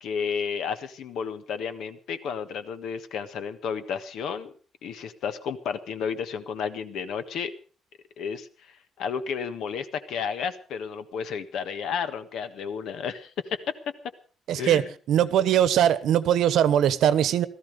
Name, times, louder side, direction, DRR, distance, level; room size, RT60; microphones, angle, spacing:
voice 1, 0.0-4.5 4.8-7.5 8.2-13.7 14.6-14.9, left 6 dB, 70° left, 1.5 m, -32 dB
voice 2, 14.5-14.8 15.1-17.5, right 10 dB, 70° right, 1.1 m, -21 dB
17.5 x 14.0 x 5.3 m
cardioid pair, 175°, 0 cm